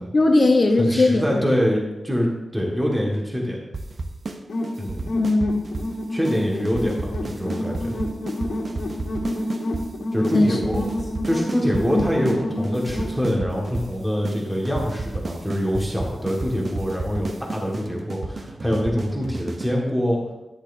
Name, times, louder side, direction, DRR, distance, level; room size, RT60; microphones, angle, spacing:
voice 1, 0.1-1.4 5.1-5.7 10.3-10.9 11.9-12.3, left 2 dB, 45° left, 3 dB, 0.9 m, -19 dB
voice 2, 0.8-3.6 4.8-5.1 6.1-8.0 10.1-10.8 11.2-20.2, equal, 10° right, -2 dB, 1.7 m, -24 dB
sound 1, 3.7-4.4 4.6-5.9 6.2-6.4 6.7-9.9 10.2-10.4 10.6-12.4 12.6-13.9 14.2-14.4 14.7-19.7, right 3 dB, 50° right, 0.8 m, -32 dB
sound 2, 4.5-13.2, left 1 dB, 85° left, 1.7 m, -29 dB
10.5 x 10.5 x 2.7 m, 1.0 s
wide cardioid pair, 100°, 0 cm